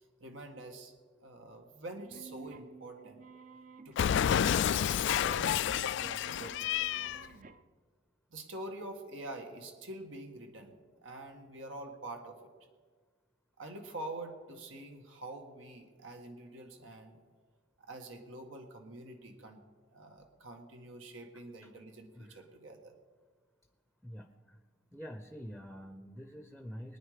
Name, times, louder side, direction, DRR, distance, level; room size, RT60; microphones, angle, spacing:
voice 1, 0.2-0.9 1.2-3.3 3.8-5.6 5.9-7.3 8.3-10.7 11.0-12.4 13.6-17.2 17.8-19.6 19.9-23.0, right 2 dB, 80° right, 3 dB, 1.6 m, -46 dB
sound 1, 2.0-7.6, right 4 dB, 40° right, 0.6 m, -52 dB
Cat, 4.0-7.3, left 9 dB, 65° left, 0.3 m, -29 dB
voice 2, 22.1-22.4 24.0-24.6 24.9-27.0, equal, ahead, 7 dB, 0.7 m, -46 dB
22.5 x 9.7 x 5.0 m, 1.5 s
head